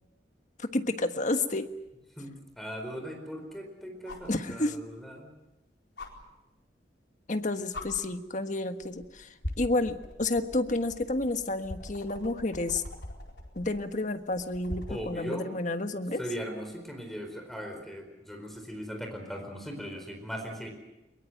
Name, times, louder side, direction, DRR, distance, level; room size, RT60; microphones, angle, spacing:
voice 1, 0.6-1.7 4.3-4.8 7.3-9.3 9.6-12.8 13.5-16.2, left 2 dB, 45° left, 8 dB, 1.5 m, -30 dB
sound 1, 1.8-1.9 4.1-4.4 6.0-6.1 7.2-7.4 7.7-7.9 8.8-9.1 9.4-15.1 16.8-16.9, left 1 dB, 80° left, 4.5 m, -41 dB
voice 2, 2.2-5.3 14.9-15.5 16.2-20.7, equal, ahead, 3 dB, 4.5 m, -39 dB
22.5 x 22.5 x 7.9 m, 0.98 s
head